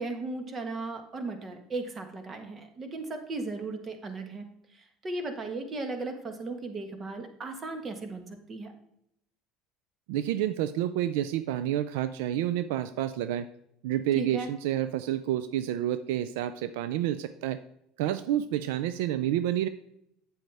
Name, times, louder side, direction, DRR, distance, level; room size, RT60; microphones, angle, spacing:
voice 1, 0.0-4.5 5.0-8.2 8.5-8.7 14.1-14.5, right 3 dB, 30° right, 7 dB, 1.4 m, -36 dB
voice 2, 10.1-13.5 13.8-17.6 18.0-19.7, right 12 dB, 80° right, 13 dB, 0.4 m, -29 dB
8.5 x 7.6 x 3.4 m, 0.75 s
supercardioid pair, 105°, 0 cm